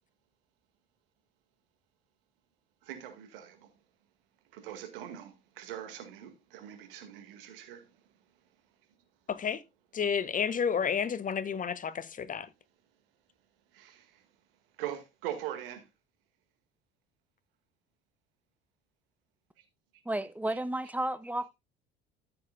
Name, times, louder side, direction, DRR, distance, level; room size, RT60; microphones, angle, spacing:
voice 1, 2.8-3.7 4.5-8.1 13.7-14.3 14.8-15.9 19.6-19.7 20.5-20.6, right 11 dB, 70° right, 2.0 m, -42 dB
voice 2, 9.3-9.6 9.9-12.5, left 7 dB, 30° left, 0.8 m, -31 dB
voice 3, 20.0-21.5, right 1 dB, 5° right, 0.7 m, -32 dB
14.0 x 7.0 x 2.3 m
figure-of-eight pair, 60°, 29 cm